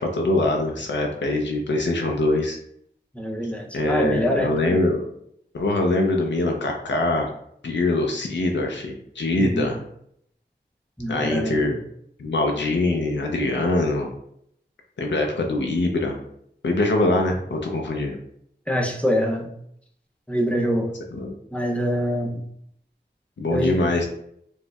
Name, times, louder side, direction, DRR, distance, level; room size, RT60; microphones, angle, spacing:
voice 1, 0.0-2.6 3.7-5.0 5.5-7.3 7.6-9.8 11.1-11.8 12.2-14.1 15.0-16.2 16.6-18.2 21.1-21.3 23.4-24.0, left 2 dB, 85° left, 1 dB, 0.4 m, -23 dB
voice 2, 3.1-4.6 9.4-9.7 11.0-11.8 18.7-19.5 20.3-20.9 21.5-22.4 23.5-23.8, equal, 5° left, -1 dB, 0.5 m, -24 dB
4.2 x 2.0 x 2.2 m, 0.72 s
wide cardioid pair, 60°, 18 cm